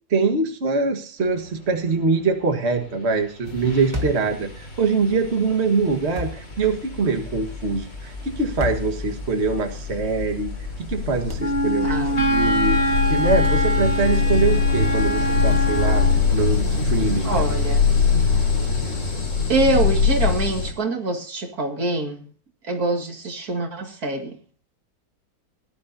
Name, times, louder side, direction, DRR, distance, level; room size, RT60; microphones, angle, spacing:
voice 1, 0.1-10.5 10.8-12.8 13.1-16.1 16.3-17.4, right 4 dB, 40° right, 4 dB, 1.9 m, -23 dB
sound 1, 2.9-3.1 3.4-20.7, left 5 dB, 45° left, 4.0 m, -24 dB
sound 2, 3.9-4.4 6.2-6.5 8.6-9.0 11.3-11.6 13.4-13.7 15.5-15.8, left 1 dB, 15° right, 1.8 m, -31 dB
Wind instrument woodwind instrument, 11.4-16.2, right 1 dB, 25° left, 1.1 m, -24 dB
voice 2, 11.8-12.2 17.2-17.9 19.5-22.2 22.6-24.3, right 2 dB, 60° right, 4 dB, 2.6 m, -24 dB
19.0 x 13.0 x 2.7 m, 0.42 s
omnidirectional pair, 1.8 m